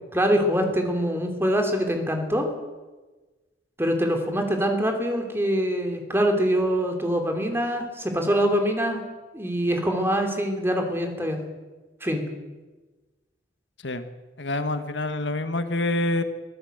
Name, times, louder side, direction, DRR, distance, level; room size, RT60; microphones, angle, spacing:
voice 1, 0.1-2.5 3.8-9.0 9.3-11.4 12.0-12.2, equal, 15° right, 4 dB, 3.1 m, -24 dB
voice 2, 14.4-16.2, left 2 dB, 75° left, 9 dB, 1.6 m, -26 dB
24.0 x 15.5 x 8.1 m, 1.2 s
head